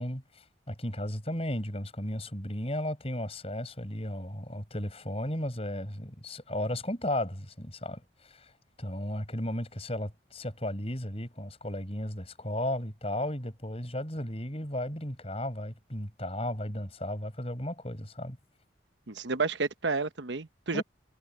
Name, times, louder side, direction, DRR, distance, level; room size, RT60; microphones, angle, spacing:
voice 1, 0.0-8.5 8.8-18.4 20.7-20.8, left 1 dB, 35° left, 6.8 m, -35 dB
voice 2, 19.1-20.8, right 4 dB, 85° right, 1.1 m, -30 dB
head